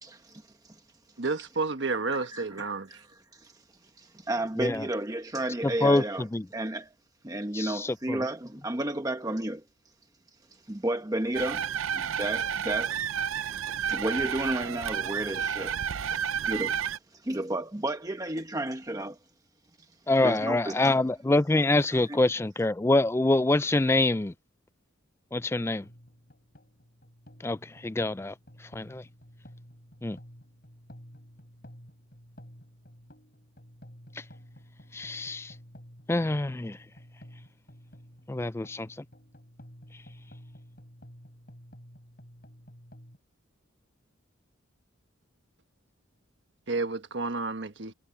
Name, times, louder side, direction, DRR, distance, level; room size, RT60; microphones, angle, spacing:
voice 1, 0.0-0.8 2.3-2.6 2.9-3.0 3.3-3.5 4.0-6.2 6.5-6.9 7.2-9.6 10.7-13.0 13.7-15.8 16.1-16.7 17.1-19.2 20.2-20.9 22.1-22.2, right 1 dB, 15° right, 1.0 m, -32 dB
voice 2, 1.2-3.0 46.7-47.9, right 3 dB, 60° right, 1.3 m, -31 dB
voice 3, 4.6-4.9 5.6-6.5 7.5-8.2 20.1-24.3 25.3-25.9 27.4-28.3 28.6-29.1 30.0-30.2 34.1-34.2 34.9-35.6 36.1-36.8 38.3-39.0, left 2 dB, 10° left, 0.3 m, -26 dB
sound 1, 11.3-17.0, right 8 dB, 85° right, 0.5 m, -31 dB
sound 2, 25.6-43.2, equal, 45° left, 6.1 m, -52 dB
head